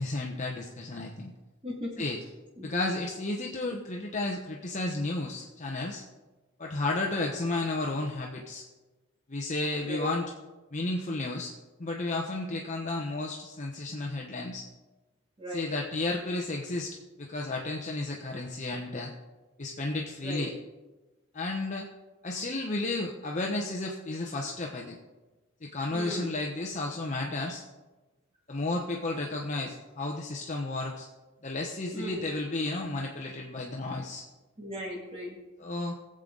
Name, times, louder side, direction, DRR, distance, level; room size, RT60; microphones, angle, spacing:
voice 1, 0.0-1.3 2.0-2.2 2.6-6.0 6.6-8.6 9.3-10.2 10.7-11.5 11.8-14.7 15.5-19.1 19.6-20.5 21.3-21.9 22.2-25.0 25.6-27.6 28.5-31.1 31.4-34.2 35.6-36.0, left 2 dB, 40° left, 0 dB, 0.9 m, -32 dB
voice 2, 1.6-2.1 2.6-2.9 9.8-10.1 15.4-15.7 20.2-20.5 25.9-26.3 31.9-32.3 34.6-35.4, equal, 30° right, -3 dB, 2.3 m, -37 dB
18.0 x 7.7 x 3.9 m, 1.2 s
head